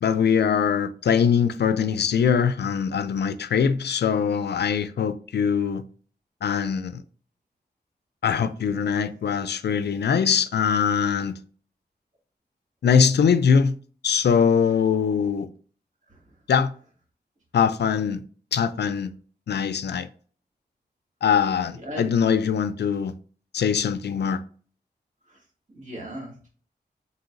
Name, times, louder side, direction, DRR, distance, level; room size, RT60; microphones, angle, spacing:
voice 1, 0.0-5.8 6.4-7.0 8.2-11.4 12.8-13.7 14.0-15.5 16.5-16.7 17.5-18.2 18.5-19.1 19.5-20.1 21.2-23.1 23.5-24.4, left 7 dB, 70° left, 0.4 m, -22 dB
voice 2, 16.1-16.4 21.7-22.1 25.3-25.4 25.7-26.5, right 1 dB, 45° right, 2.1 m, -38 dB
4.0 x 3.9 x 2.5 m
cardioid pair, 55°, 18 cm